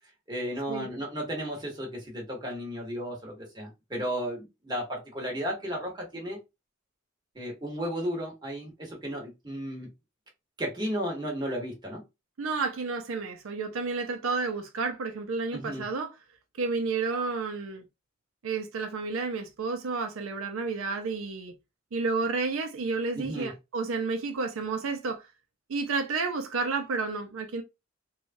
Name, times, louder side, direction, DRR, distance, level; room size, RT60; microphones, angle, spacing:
voice 1, 0.3-6.4 7.3-9.9 10.6-12.0 15.5-15.8 23.1-23.5, equal, 20° right, 1.0 m, -34 dB
voice 2, 12.4-16.1 16.6-17.8 18.4-21.5 21.9-25.2 25.7-27.6, right 4 dB, 85° right, 0.5 m, -31 dB
3.1 x 2.3 x 2.6 m
head